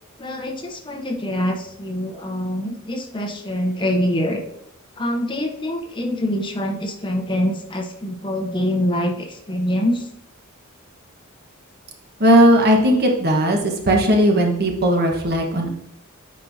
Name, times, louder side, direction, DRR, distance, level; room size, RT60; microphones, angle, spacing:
voice 1, 0.2-4.4 5.0-10.0, left 1 dB, 25° left, 2 dB, 0.8 m, -24 dB
voice 2, 12.2-15.7, equal, 50° right, 1 dB, 1.2 m, -17 dB
9.3 x 4.4 x 2.7 m, 0.79 s
head